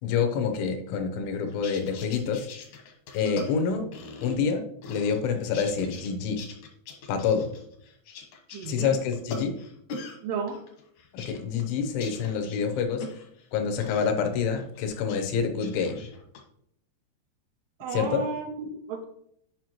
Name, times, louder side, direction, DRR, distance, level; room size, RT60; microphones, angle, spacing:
voice 1, 0.0-2.5 3.1-3.9 4.2-6.4 7.1-7.5 8.7-9.5 11.1-13.1 13.5-16.1 17.9-18.2, left 6 dB, 90° left, 6 dB, 3.4 m, -27 dB
sound 1, 1.5-4.5 4.8-6.1 6.4-10.2 10.5-13.5 13.8-14.1 14.6-15.2 15.5-16.4, left 3 dB, 75° left, 1.8 m, -41 dB
voice 2, 8.5-9.0 10.2-10.6 17.8-19.0, right 5 dB, 80° right, 4 dB, 2.5 m, -33 dB
9.2 x 5.7 x 3.0 m, 0.69 s
omnidirectional pair, 5.2 m